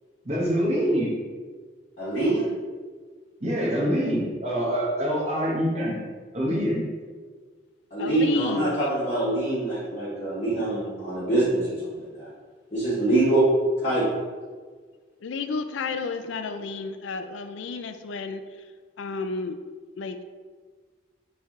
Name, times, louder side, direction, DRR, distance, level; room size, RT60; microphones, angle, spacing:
voice 1, 0.2-1.2 3.4-6.0 6.3-6.8, equal, 35° right, -5 dB, 0.8 m, -25 dB
voice 2, 2.0-2.5 7.9-12.3 12.7-13.5 13.8-14.1, right 2 dB, 40° left, -13 dB, 1.2 m, -24 dB
voice 3, 8.0-8.9 15.2-18.4 19.0-19.6 20.0-20.2, left 4 dB, 80° left, 8 dB, 0.4 m, -31 dB
4.4 x 3.3 x 3.6 m, 1.5 s
head